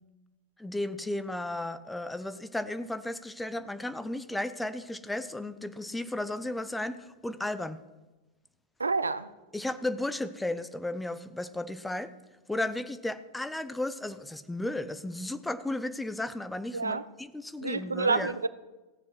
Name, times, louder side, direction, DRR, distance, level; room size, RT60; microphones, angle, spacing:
voice 1, 0.6-7.8 9.5-12.1 12.5-18.4, left 1 dB, 5° left, 0.7 m, -34 dB
voice 2, 8.8-9.3 16.7-17.0 17.6-18.5, right 4 dB, 75° right, 0.5 m, -28 dB
16.0 x 7.2 x 6.1 m
figure-of-eight pair, 90°, 0 cm